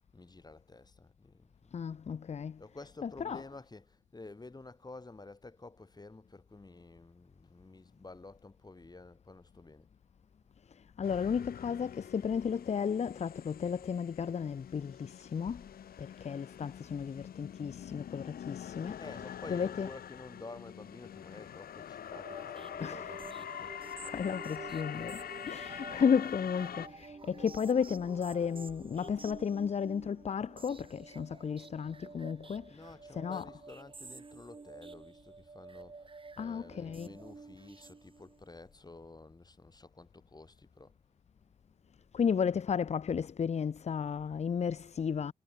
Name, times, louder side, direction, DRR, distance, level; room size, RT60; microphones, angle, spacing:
voice 1, 0.1-1.7 2.6-9.9 19.0-23.7 32.7-36.1 36.4-40.9, left 3 dB, 25° left, 5.9 m, -51 dB
voice 2, 1.7-2.6 3.0-3.4 10.7-15.6 16.0-19.0 19.5-19.9 22.8-23.2 24.0-32.8 33.1-33.5 36.4-37.1 42.1-45.3, left 7 dB, 45° left, 0.5 m, -33 dB
sound 1, 11.0-26.9, left 9 dB, 90° left, 0.6 m, -45 dB
sound 2, 22.1-38.5, right 4 dB, 35° right, 2.3 m, -50 dB
wide cardioid pair, 100°, 15 cm